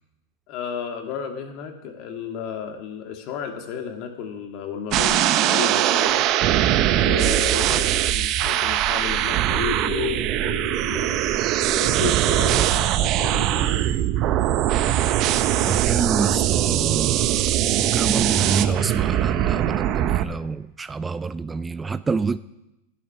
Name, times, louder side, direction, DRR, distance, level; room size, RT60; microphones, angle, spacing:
voice 1, 0.5-6.3 6.9-11.4 11.7-13.9, left 8 dB, 50° left, 4 dB, 2.0 m, -33 dB
sound 1, 4.9-20.2, right 12 dB, 45° right, 0.8 m, -21 dB
voice 2, 15.7-22.4, right 4 dB, 15° right, 15 dB, 0.3 m, -27 dB
11.0 x 11.0 x 5.9 m, 0.95 s
hypercardioid pair, 115°, 0 cm